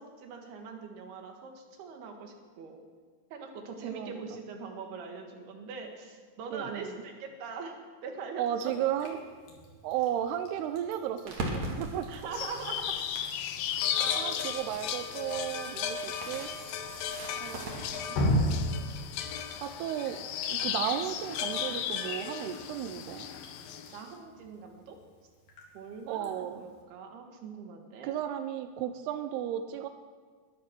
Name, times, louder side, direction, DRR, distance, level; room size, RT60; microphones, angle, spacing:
voice 1, 0.0-2.8 3.3-8.9 12.1-13.0 14.0-14.6 15.1-15.2 23.9-25.0 25.7-28.2, right 5 dB, 65° right, 3 dB, 3.4 m, -42 dB
voice 2, 3.8-4.4 6.5-7.0 8.4-9.2 9.8-12.1 14.2-16.5 17.4-18.2 19.6-20.2 20.5-23.3 26.1-26.6 28.0-29.9, right 10 dB, 80° right, 9 dB, 2.4 m, -34 dB
Drip, 8.5-26.8, equal, 55° left, 4.2 m, -39 dB
sound 1, 11.3-18.0, right 1 dB, 45° right, 3.0 m, -41 dB
sound 2, 12.3-24.0, left 9 dB, 85° left, 2.1 m, -35 dB
21.5 x 11.0 x 6.0 m, 1.5 s
omnidirectional pair, 5.4 m